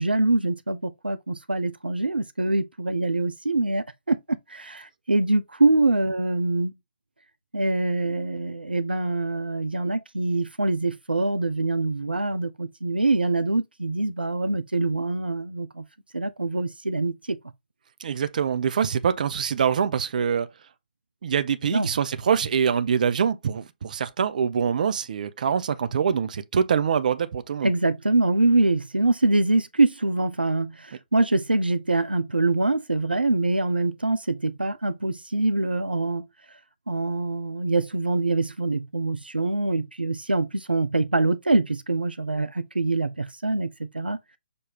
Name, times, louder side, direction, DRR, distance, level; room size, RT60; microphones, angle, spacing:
voice 1, 0.0-6.7 7.5-15.8 16.1-17.4 21.7-21.9 27.6-36.3 36.9-44.2, right 2 dB, 90° right, 0.7 m, -24 dB
voice 2, 18.0-20.5 21.2-27.7, right 7 dB, 55° right, 0.9 m, -24 dB
7.0 x 2.7 x 5.1 m
figure-of-eight pair, 135°, 5 cm